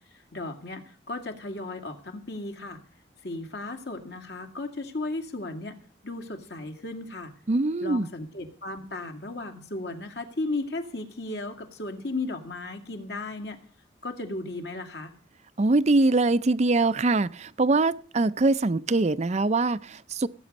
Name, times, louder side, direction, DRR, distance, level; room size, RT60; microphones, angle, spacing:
voice 1, 0.3-2.8 3.2-5.8 6.0-7.3 7.8-13.6 14.0-15.1, left 2 dB, 60° left, 2.1 m, -35 dB
voice 2, 7.5-8.1 15.6-20.3, right 2 dB, 35° right, 0.5 m, -23 dB
18.5 x 8.6 x 5.3 m
head